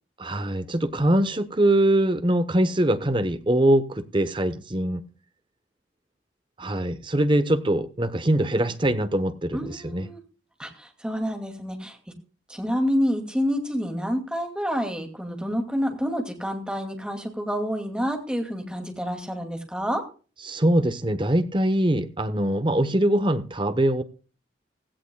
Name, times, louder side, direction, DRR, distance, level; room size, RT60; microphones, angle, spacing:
voice 1, 0.2-5.0 6.6-10.1 20.4-24.0, right 1 dB, 25° right, 1.0 m, -23 dB
voice 2, 9.5-10.2 10.6-12.0 12.5-20.0, equal, 5° right, 2.4 m, -28 dB
16.5 x 15.5 x 2.3 m
head